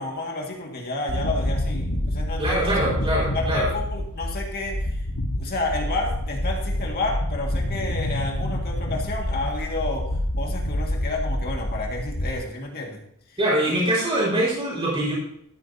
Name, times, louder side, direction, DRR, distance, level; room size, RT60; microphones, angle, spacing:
voice 1, 0.0-2.8 3.2-5.0 5.4-13.0 13.3-13.4 13.7-13.8, left 2 dB, 45° left, 0 dB, 2.0 m, -30 dB
sound 1, 1.1-12.3, left 1 dB, 60° left, 1.5 m, -27 dB
voice 2, 2.4-3.7 13.4-15.1, right 1 dB, 25° right, -5 dB, 4.8 m, -23 dB
13.0 x 12.5 x 2.8 m, 0.70 s
head